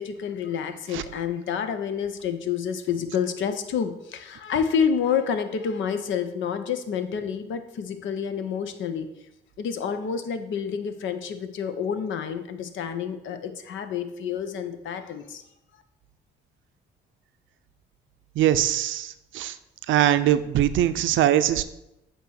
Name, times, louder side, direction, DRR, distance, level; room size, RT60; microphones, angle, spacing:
voice 1, 0.0-9.1 9.6-15.4, left 7 dB, 75° left, 9 dB, 0.8 m, -28 dB
voice 2, 18.4-19.5 19.9-21.6, right 12 dB, 75° right, 12 dB, 0.5 m, -22 dB
8.1 x 3.1 x 6.3 m, 0.87 s
cardioid pair, 90°, 20 cm